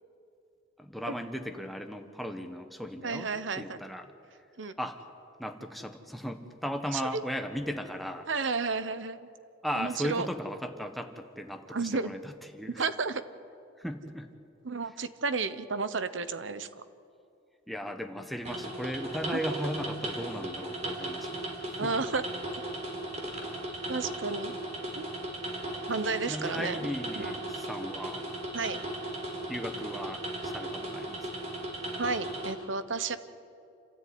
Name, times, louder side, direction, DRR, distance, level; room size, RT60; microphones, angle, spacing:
voice 1, 0.8-4.1 4.8-5.0 5.4-8.3 9.6-12.8 13.8-14.3 17.7-21.4 21.7-21.9 26.3-28.3 29.5-31.3, equal, ahead, 5 dB, 1.4 m, -37 dB
voice 2, 3.0-3.8 4.6-4.8 6.9-7.2 8.3-9.2 9.8-10.3 11.7-12.1 12.8-13.2 14.6-16.8 19.3-19.4 21.8-22.2 23.9-24.5 24.9-25.1 25.9-26.9 27.1-27.3 28.5-28.8 31.9-33.2, right 4 dB, 75° right, 13 dB, 1.0 m, -32 dB
sound 1, 18.5-32.5, right 1 dB, 40° right, 3.8 m, -37 dB
28.5 x 13.5 x 9.6 m, 2.6 s
head